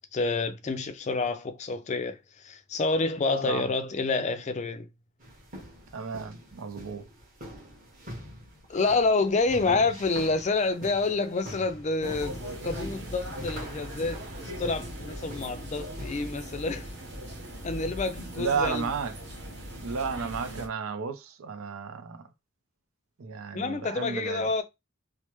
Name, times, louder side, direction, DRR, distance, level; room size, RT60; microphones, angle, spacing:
voice 1, 0.1-2.2 2.4-4.9 8.7-14.2 14.6-16.9 17.6-18.9 23.5-24.6, left 3 dB, 35° left, 0.4 m, -28 dB
sound 1, 5.2-16.4, equal, 40° right, 1.3 m, -45 dB
voice 2, 5.9-7.0 9.6-9.8 18.4-19.1 19.8-22.2 23.2-24.5, right 5 dB, 90° right, 0.5 m, -33 dB
sound 2, 12.0-20.7, equal, 55° right, 1.0 m, -39 dB
3.2 x 2.0 x 3.0 m
head